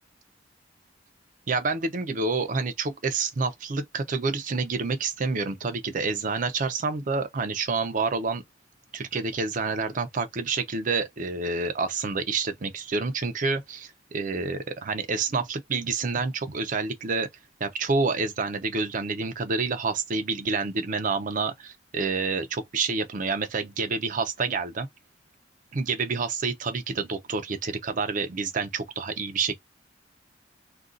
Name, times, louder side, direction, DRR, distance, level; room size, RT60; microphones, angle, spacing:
voice 1, 1.5-8.4 8.9-17.3 17.6-24.9 25.7-29.5, right 4 dB, 45° right, 0.5 m, -28 dB
2.5 x 2.3 x 3.7 m
head